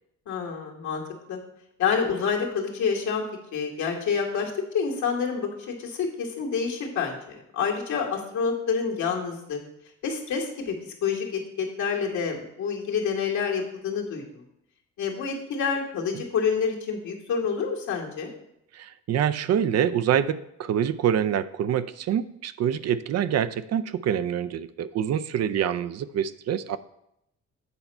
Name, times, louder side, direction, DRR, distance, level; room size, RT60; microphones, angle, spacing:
voice 1, 0.3-1.0 1.3-1.4 1.8-3.2 3.5-9.6 10.0-10.7 11.0-14.4 15.0-18.3, left 6 dB, 75° left, 0 dB, 1.8 m, -28 dB
voice 2, 18.7-26.8, right 9 dB, 60° right, 13 dB, 0.5 m, -26 dB
8.2 x 4.4 x 5.4 m, 0.78 s
cardioid pair, 90°, 30 cm